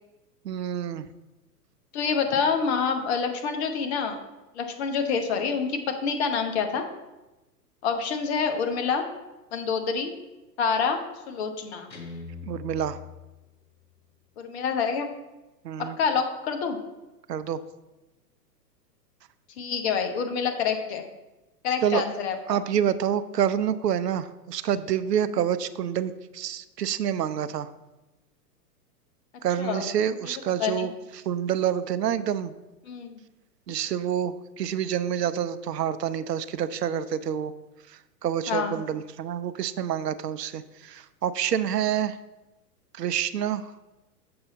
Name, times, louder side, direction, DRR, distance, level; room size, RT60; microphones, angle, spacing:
voice 1, 0.4-1.1 12.5-13.0 15.6-16.0 17.3-17.6 21.8-22.0 22.5-27.7 29.4-32.5 33.7-37.5 37.9-42.2 42.9-43.7, right 9 dB, 75° right, 14 dB, 0.6 m, -27 dB
voice 2, 1.9-4.2 4.5-6.9 7.8-9.1 9.5-10.1 10.6-11.0 11.3-11.9 14.4-15.1 15.8-16.8 19.6-21.0 21.6-22.6 29.6-29.9 30.6-30.9 32.9-33.2 38.5-38.8, left 6 dB, 40° left, 5 dB, 1.0 m, -27 dB
Guitar, 11.9-13.9, left 6 dB, 85° left, 1.5 m, -42 dB
7.7 x 5.5 x 4.0 m, 1.1 s
figure-of-eight pair, 110°, 49 cm